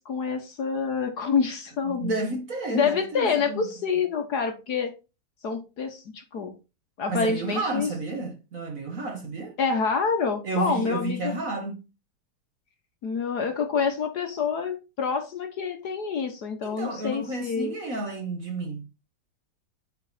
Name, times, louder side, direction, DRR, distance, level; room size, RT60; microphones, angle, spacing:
voice 1, 0.0-2.3 2.7-4.9 5.4-6.5 7.0-7.9 9.6-11.3 13.0-17.7, left 5 dB, 55° left, 1.4 m, -27 dB
voice 2, 1.8-3.7 7.1-9.5 10.4-11.8 16.6-18.8, right 2 dB, 45° right, 1.4 m, -31 dB
8.6 x 4.7 x 4.0 m
omnidirectional pair, 2.3 m